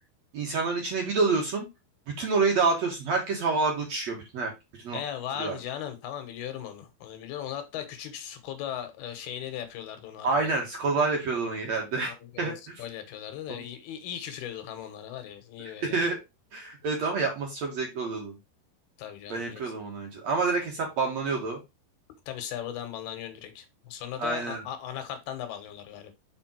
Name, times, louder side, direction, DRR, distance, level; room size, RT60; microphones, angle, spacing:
voice 1, 0.3-1.7 2.2-4.5 4.8-5.0 5.4-5.6 10.2-12.1 12.4-12.8 13.5-13.6 15.8-16.2 16.5-18.4 19.3-21.6 24.2-24.6, right 4 dB, 55° right, 2.2 m, -28 dB
voice 2, 4.9-10.5 12.0-16.0 19.0-19.6 22.3-26.1, left 10 dB, 75° left, 3.0 m, -38 dB
6.0 x 5.4 x 4.4 m
omnidirectional pair, 4.7 m